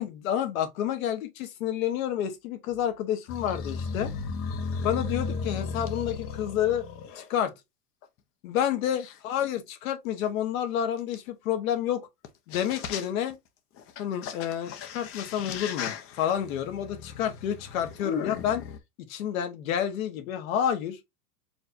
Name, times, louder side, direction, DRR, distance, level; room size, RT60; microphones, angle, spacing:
voice 1, 0.0-4.1 4.8-6.8 7.2-7.5 8.4-12.1 12.5-13.4 14.0-18.6 19.1-21.0, left 10 dB, 55° left, 1.2 m, -29 dB
sound 1, 3.3-7.3 8.0-8.1 9.0-9.1 11.1-11.2 12.2-12.3 12.5-13.3 13.8-18.8, left 5 dB, 30° left, 0.7 m, -35 dB
4.7 x 3.4 x 2.6 m
hypercardioid pair, 110°, 48 cm